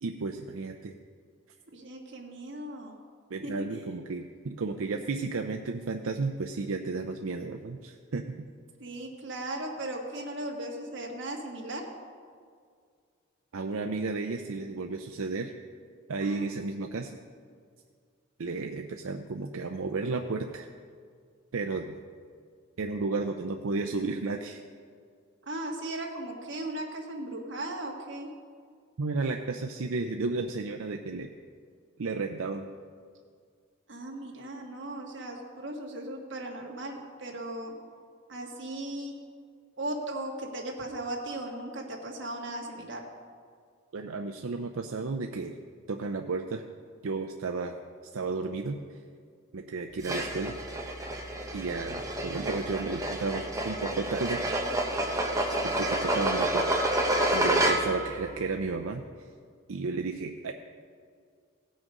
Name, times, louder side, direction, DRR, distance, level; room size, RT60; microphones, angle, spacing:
voice 1, 0.0-0.9 3.3-8.5 13.5-15.5 16.1-17.2 18.4-20.7 21.5-22.0 22.8-24.6 29.0-31.3 32.0-32.7 43.9-45.6 45.9-46.6 47.0-47.8 48.1-48.8 49.5-50.6 51.5-54.4 55.5-56.9 57.3-59.0 59.7-60.5, right 3 dB, 85° right, 4 dB, 0.6 m, -33 dB
voice 2, 1.7-3.0 3.4-3.9 8.8-11.8 16.2-16.4 16.8-17.0 25.5-28.3 33.9-37.7 38.3-39.1 39.8-43.0, right 1 dB, 60° right, 0 dB, 1.7 m, -37 dB
sound 1, 50.0-58.1, right 1 dB, 15° right, 1.0 m, -29 dB
17.0 x 6.4 x 5.3 m, 2.1 s
head